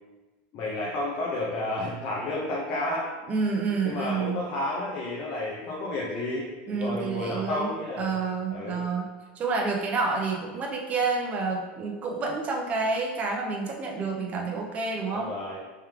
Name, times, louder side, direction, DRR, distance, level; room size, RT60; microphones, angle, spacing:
voice 1, 0.5-3.1 3.8-8.2 8.5-8.8 15.1-15.6, left 1 dB, 40° left, -4 dB, 0.7 m, -31 dB
voice 2, 3.3-4.4 6.7-7.7 8.0-9.1 9.3-15.4, right 4 dB, 25° right, 0 dB, 0.7 m, -29 dB
3.4 x 3.1 x 3.5 m, 1.2 s
supercardioid pair, 150°, 5 cm